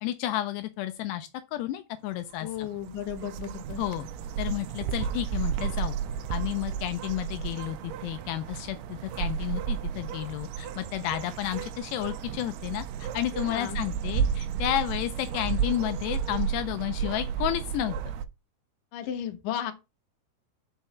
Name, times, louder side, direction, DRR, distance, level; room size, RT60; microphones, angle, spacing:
voice 1, 0.0-2.7 3.8-4.1 4.4-6.0 6.3-18.0, left 13 dB, 80° left, 2.7 m, -31 dB
sound 1, 2.1-18.2, right 8 dB, 80° right, 2.3 m, -33 dB
voice 2, 2.4-3.8 13.5-13.8 18.9-19.7, left 9 dB, 65° left, 2.3 m, -34 dB
5.6 x 5.2 x 5.9 m
omnidirectional pair, 5.0 m